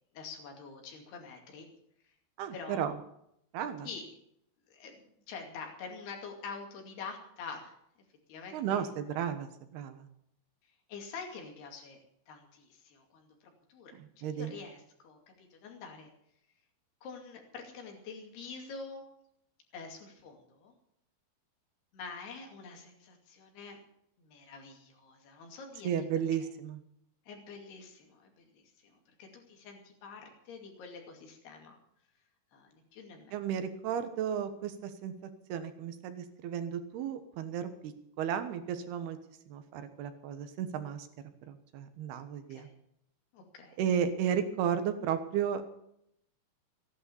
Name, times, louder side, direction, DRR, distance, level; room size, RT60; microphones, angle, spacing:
voice 1, 0.1-1.7 2.5-2.9 3.8-4.1 4.7-7.7 8.3-8.8 10.9-12.0 12.3-13.4 13.7-16.1 17.0-19.0 19.7-20.7 21.9-23.8 24.2-25.9 27.3-31.8 32.5-33.4 42.5-42.7 43.3-43.8, left 5 dB, 80° left, 2 dB, 4.5 m, -46 dB
voice 2, 2.4-2.9 3.5-3.9 8.5-10.1 13.9-14.5 25.8-26.8 33.3-35.1 35.5-39.2 39.5-41.1 41.5-42.7 43.8-45.7, right 8 dB, 80° right, 9 dB, 3.3 m, -34 dB
15.0 x 11.0 x 7.0 m, 0.75 s
omnidirectional pair, 4.5 m